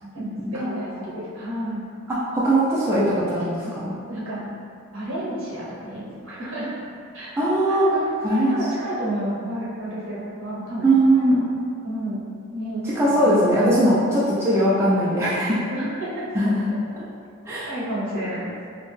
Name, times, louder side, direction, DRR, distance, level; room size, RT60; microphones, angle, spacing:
voice 1, 0.0-1.8 3.6-3.7 4.1-4.5 4.9-7.3 7.7-8.0 8.5-10.9 11.1-11.4 11.8-12.2 12.5-13.3 15.7-16.3 17.7-18.5, right 1 dB, 70° right, -7 dB, 0.8 m, -31 dB
voice 2, 2.1-3.9 7.4-7.9 8.2-8.6 10.8-11.4 13.0-15.6 16.3-16.8 17.5-17.7, right 1 dB, 10° right, -9 dB, 0.3 m, -20 dB
2.7 x 2.2 x 3.0 m, 2.3 s
head